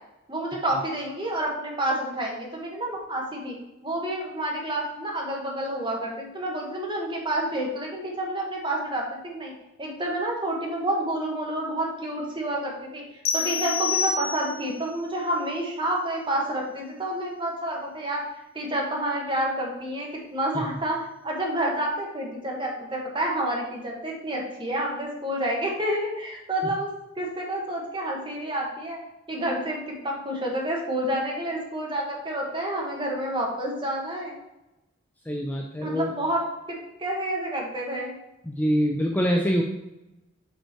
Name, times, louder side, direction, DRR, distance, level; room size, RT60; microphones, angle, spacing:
voice 1, 0.3-3.5 3.8-9.5 9.8-13.0 13.3-18.2 18.5-21.0 21.2-26.9 27.2-29.0 29.3-34.4 35.8-38.1, right 1 dB, 25° right, -1 dB, 1.3 m, -29 dB
sound 1, 13.3-14.8, left 5 dB, 50° left, 0.8 m, -27 dB
voice 2, 35.3-36.1 38.4-39.6, equal, 10° left, 1 dB, 0.4 m, -25 dB
5.2 x 4.9 x 4.5 m, 0.94 s
head